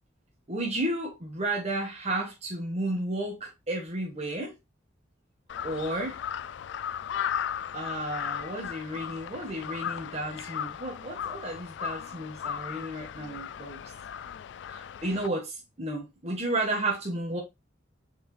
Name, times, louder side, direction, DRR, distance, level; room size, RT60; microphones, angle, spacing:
voice 1, 0.5-4.6 5.6-6.2 7.7-13.8 14.7-17.4, right 1 dB, 35° right, 1.4 m, -32 dB
Crow, 5.5-15.3, left 9 dB, 65° left, 0.3 m, -36 dB
6.4 x 4.5 x 3.2 m
head